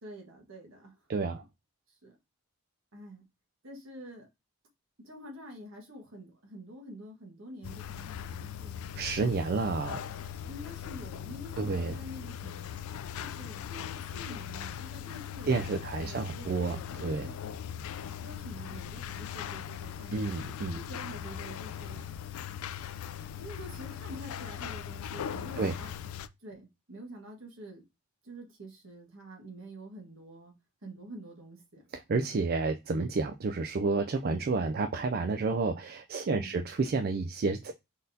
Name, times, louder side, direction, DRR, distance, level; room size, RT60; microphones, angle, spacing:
voice 1, 0.0-0.9 1.3-1.5 1.9-2.1 2.9-3.2 3.6-4.3 5.0-8.7 10.5-12.7 13.2-17.4 18.2-20.2 20.6-22.2 23.4-25.9 26.4-27.8 28.2-30.5 30.8-31.8 36.3-36.5, right 1 dB, 60° right, 1.6 m, -47 dB
voice 2, 1.1-1.4 8.9-10.1 11.6-12.0 15.5-17.3 20.1-20.8 25.6-25.7 31.9-37.7, right 3 dB, 45° right, 0.3 m, -30 dB
sound 1, 7.6-26.3, left 9 dB, 75° left, 0.3 m, -40 dB
4.0 x 3.9 x 2.6 m
head